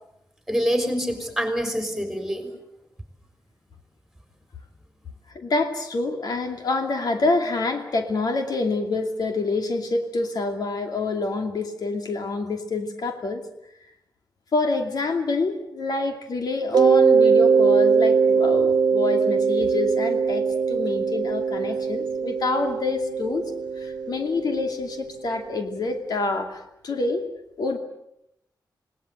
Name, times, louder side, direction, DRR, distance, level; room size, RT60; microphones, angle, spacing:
voice 1, 0.5-2.5, equal, 5° right, 6 dB, 3.9 m, -25 dB
voice 2, 5.3-13.5 14.5-23.4 23.8-27.3 27.6-27.8, left 3 dB, 60° left, 5 dB, 2.6 m, -27 dB
Mallet percussion, 16.7-25.3, right 5 dB, 65° right, 1.0 m, -21 dB
27.5 x 19.5 x 7.9 m, 0.80 s
wide cardioid pair, 170°, 7 cm